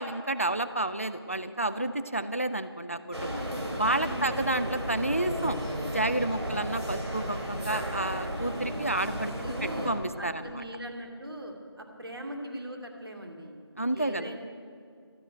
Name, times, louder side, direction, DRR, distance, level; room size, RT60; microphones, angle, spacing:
voice 1, 0.0-3.4 3.8-5.6 5.9-9.3 9.6-10.6 13.8-14.4, right 2 dB, 30° left, 12 dB, 0.4 m, -30 dB
sound 1, 3.1-9.9, equal, 80° right, 3.8 m, -34 dB
voice 2, 4.0-4.3 6.4-6.5 9.2-9.9 10.2-13.6 13.9-14.4, equal, 60° right, 2 dB, 2.4 m, -40 dB
13.0 x 10.5 x 9.2 m, 2.3 s
figure-of-eight pair, 180°, 14 cm